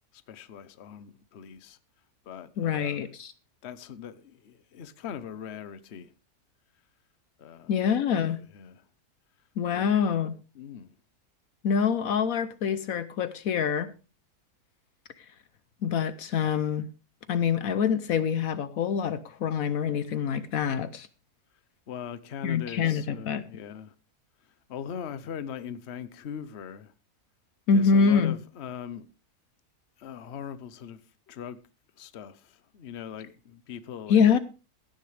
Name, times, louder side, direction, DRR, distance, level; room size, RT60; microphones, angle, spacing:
voice 1, 0.1-1.8 2.2-3.1 3.6-6.1 7.4-7.7 8.2-8.8 9.7-9.9 10.5-10.9 21.9-23.9 24.7-26.9 27.7-29.1 30.0-31.0 31.3-31.6 32.0-34.4, left 8 dB, 50° left, 1.0 m, -40 dB
voice 2, 2.6-3.3 7.7-8.4 9.6-10.3 11.6-13.9 15.8-16.9 17.3-21.1 22.4-23.4 27.7-28.4 34.1-34.4, left 6 dB, 70° left, 1.2 m, -25 dB
16.5 x 10.0 x 3.3 m
omnidirectional pair, 1.6 m